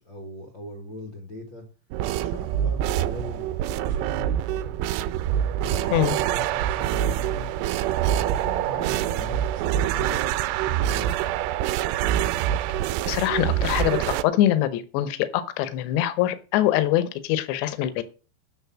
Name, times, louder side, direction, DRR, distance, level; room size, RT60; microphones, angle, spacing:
voice 1, 0.0-1.7 2.1-4.7 5.6-7.5 8.2-10.3 10.6-11.1, left 2 dB, 60° left, 3 dB, 1.2 m, -40 dB
sound 1, 1.9-14.2, right 11 dB, 80° right, 2.5 m, -25 dB
voice 2, 13.1-18.0, left 12 dB, 80° left, 13 dB, 3.1 m, -23 dB
9.4 x 6.4 x 7.4 m, 0.36 s
omnidirectional pair, 5.2 m